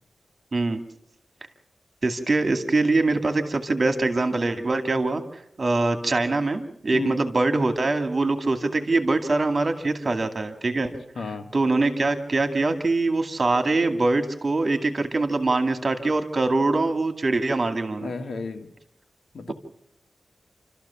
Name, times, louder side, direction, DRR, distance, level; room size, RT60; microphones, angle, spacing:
voice 1, 0.5-0.8 2.0-5.2 5.6-10.9 11.5-18.1 19.5-19.6, right 3 dB, 45° right, 7 dB, 2.2 m, -23 dB
voice 2, 10.8-11.5 18.0-18.7 19.3-19.5, left 4 dB, 75° left, 7 dB, 1.7 m, -33 dB
28.5 x 13.5 x 7.1 m, 0.76 s
cardioid pair, 70°, 0 cm